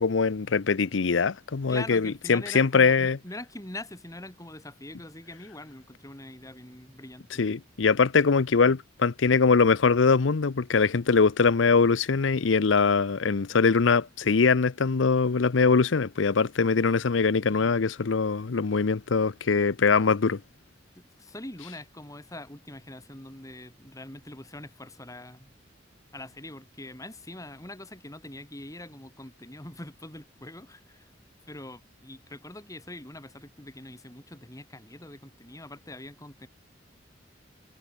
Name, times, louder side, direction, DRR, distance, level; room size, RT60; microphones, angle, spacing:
voice 1, 0.0-3.2 7.4-20.4, left 5 dB, 90° left, 0.7 m, -22 dB
voice 2, 1.7-7.4 17.5-17.7 21.0-25.5 26.1-31.1 31.5-36.5, left 1 dB, 20° left, 4.0 m, -43 dB
head